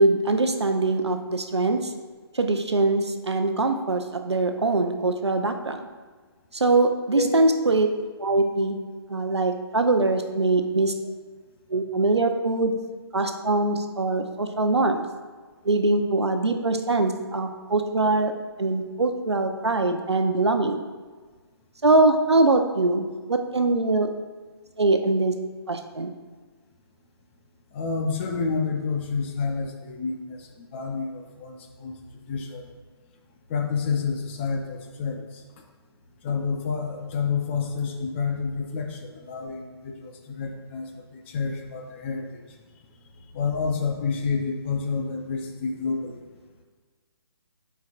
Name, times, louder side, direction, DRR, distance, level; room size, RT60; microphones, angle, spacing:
voice 1, 0.0-1.9 2.3-5.9 6.5-7.9 8.2-8.8 9.1-10.9 11.7-12.7 13.1-15.0 15.6-18.3 18.6-20.8 21.8-24.1 24.8-25.3 25.7-26.1, right 2 dB, 85° right, 6 dB, 0.8 m, -22 dB
voice 2, 27.7-31.9 32.3-32.6 33.5-35.4 36.2-42.4 43.3-46.2, left 5 dB, 25° left, 3 dB, 0.7 m, -29 dB
11.5 x 4.7 x 2.5 m, 1.4 s
figure-of-eight pair, 140°, 14 cm